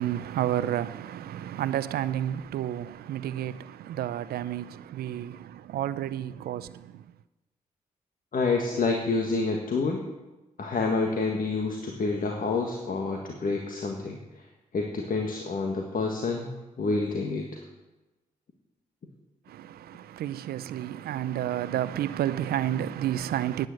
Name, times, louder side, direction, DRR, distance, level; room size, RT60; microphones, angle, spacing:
voice 1, 0.0-7.0 19.5-23.7, right 11 dB, 85° right, 0.5 m, -31 dB
voice 2, 8.3-10.0 10.6-14.4 14.7-16.5 16.8-17.6, left 3 dB, 65° left, 1.6 m, -28 dB
9.8 x 9.1 x 7.8 m
supercardioid pair, 40°, 16 cm